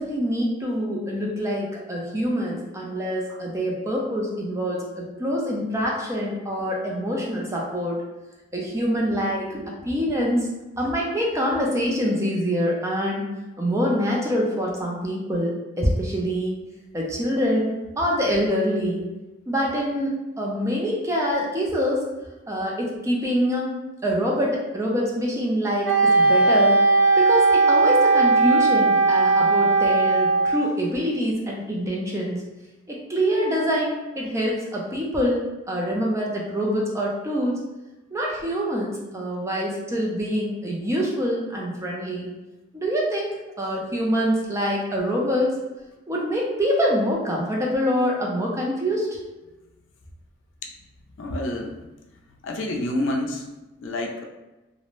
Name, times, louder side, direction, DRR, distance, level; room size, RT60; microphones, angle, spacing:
voice 1, 0.0-8.0 8.5-10.5 10.8-13.2 13.6-16.6 16.9-19.1 19.5-22.0 22.5-23.7 24.0-26.8 27.2-32.4 32.9-37.6 38.1-42.3 42.7-43.3 43.6-45.5 46.1-49.2, equal, 15° right, -3 dB, 0.4 m, -25 dB
Wind instrument woodwind instrument, 25.8-30.7, right 3 dB, 65° right, 0.8 m, -18 dB
voice 2, 51.2-51.8 52.3-53.5 53.8-54.2, left 1 dB, 75° left, 1 dB, 0.4 m, -28 dB
2.5 x 2.0 x 3.0 m, 1.1 s
head